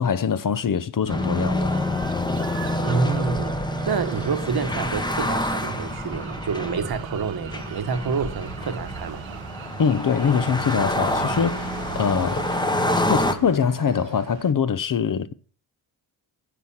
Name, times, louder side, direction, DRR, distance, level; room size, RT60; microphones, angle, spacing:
voice 1, 0.0-1.7 9.8-12.5 12.9-15.3, left 7 dB, 40° left, 0.8 m, -23 dB
sound 1, 1.0-14.5, right 11 dB, 65° right, 0.9 m, -40 dB
sound 2, 1.1-13.3, left 1 dB, 10° left, 1.0 m, -27 dB
voice 2, 2.8-3.6 3.9-9.2, right 5 dB, 50° right, 1.2 m, -28 dB
10.0 x 6.5 x 7.1 m
cardioid pair, 105°, 48 cm